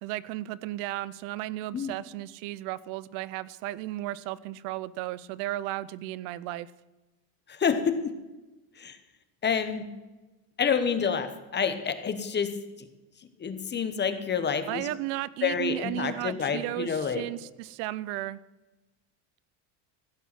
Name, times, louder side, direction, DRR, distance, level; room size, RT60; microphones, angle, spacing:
voice 1, 0.0-6.7 14.7-18.4, right 16 dB, 75° right, 19 dB, 0.7 m, -34 dB
voice 2, 7.5-8.2 8.8-9.0 9.4-9.9 10.6-12.9 13.4-14.9 15.4-17.2, left 6 dB, 20° left, 10 dB, 0.9 m, -28 dB
15.5 x 8.3 x 5.9 m, 1.1 s
cardioid pair, 150°, 48 cm